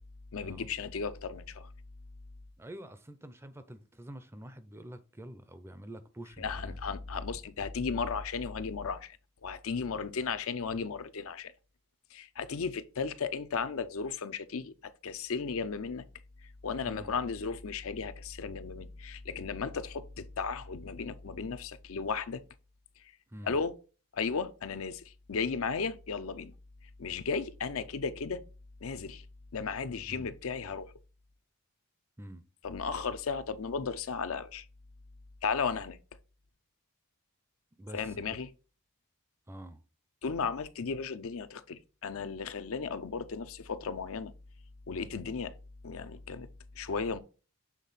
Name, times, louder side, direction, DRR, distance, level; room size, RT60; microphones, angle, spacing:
voice 1, 0.3-1.7 6.4-11.5 12.1-16.0 16.4-22.4 23.0-23.1 23.4-23.8 24.1-26.5 27.0-28.4 28.8-29.2 29.5-30.9 32.6-34.7 35.4-36.0 37.9-38.5 40.2-44.3 44.9-45.6 45.8-46.5 46.8-47.2, left 5 dB, 70° left, 0.5 m, -35 dB
voice 2, 2.6-6.8 16.9-17.2 23.3-23.6 30.1-30.3 32.2-32.4 37.8-38.2 39.5-39.8, right 1 dB, 10° right, 0.4 m, -47 dB
7.4 x 3.6 x 4.0 m
head